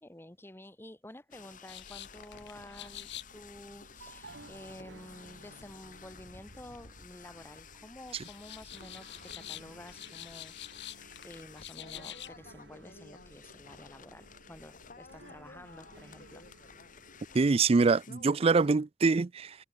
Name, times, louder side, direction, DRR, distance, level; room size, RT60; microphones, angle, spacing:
voice 1, 0.0-16.5, left 1 dB, 15° left, 1.6 m, -51 dB
sound 1, 1.3-18.7, left 5 dB, 50° left, 2.1 m, -53 dB
sound 2, 1.7-17.5, left 12 dB, 70° left, 2.3 m, -50 dB
sound 3, 2.4-17.3, right 2 dB, 75° right, 2.9 m, -56 dB
voice 2, 17.3-19.5, right 4 dB, 35° right, 0.4 m, -24 dB
head